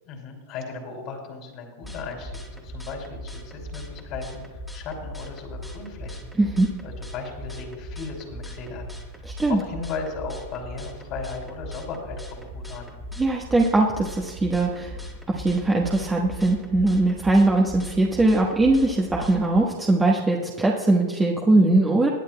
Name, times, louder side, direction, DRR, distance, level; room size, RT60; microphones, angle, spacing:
voice 1, 0.1-4.4 4.7-6.3 6.8-12.9, left 4 dB, 45° left, 1 dB, 2.7 m, -36 dB
sound 1, 1.8-19.6, equal, ahead, 1.8 m, -39 dB
voice 2, 6.4-6.7 9.2-9.6 13.2-15.0 15.3-22.1, right 2 dB, 15° right, -2 dB, 1.2 m, -21 dB
20.0 x 10.0 x 2.2 m, 1.3 s
hypercardioid pair, 105°, 0 cm